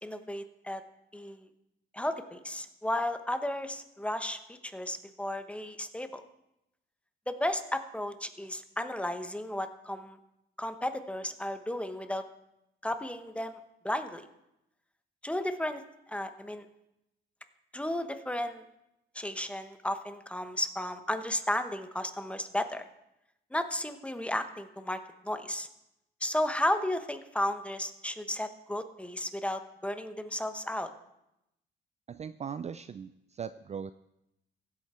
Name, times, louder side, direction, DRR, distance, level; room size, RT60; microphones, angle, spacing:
voice 1, 0.0-0.8 1.1-1.5 1.9-6.2 7.3-10.2 10.6-12.2 12.8-13.6 13.8-14.3 15.2-15.8 16.1-16.6 17.7-18.6 19.1-22.8 23.5-25.7 26.2-30.9, left 1 dB, 5° left, 9 dB, 1.0 m, -34 dB
voice 2, 32.1-33.1 33.4-33.9, right 7 dB, 35° right, 12 dB, 0.4 m, -38 dB
15.5 x 8.3 x 4.3 m, 0.86 s
cardioid pair, 90°, 20 cm